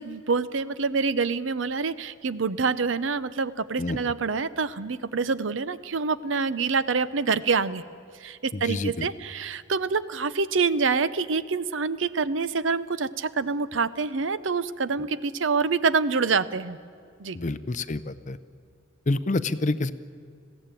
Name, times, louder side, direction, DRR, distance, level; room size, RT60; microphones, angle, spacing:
voice 1, 0.0-7.8 8.2-16.8 17.2-17.4, right 4 dB, 70° right, 16 dB, 0.7 m, -26 dB
voice 2, 8.5-9.1 17.3-18.4 19.1-19.9, left 2 dB, 40° left, 14 dB, 0.6 m, -28 dB
20.5 x 15.5 x 9.1 m, 2.3 s
head